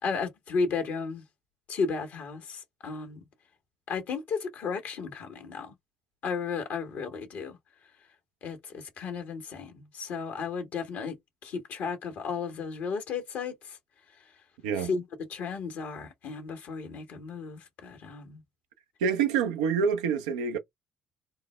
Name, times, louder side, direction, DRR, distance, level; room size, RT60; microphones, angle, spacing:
voice 1, 0.0-1.2 1.7-3.2 3.9-5.7 6.2-7.6 8.4-13.8 14.8-18.4, left 5 dB, 60° left, 1.3 m, -34 dB
voice 2, 19.0-20.6, right 6 dB, 80° right, 0.6 m, -26 dB
4.4 x 2.1 x 3.2 m
hypercardioid pair, 50°, 3 cm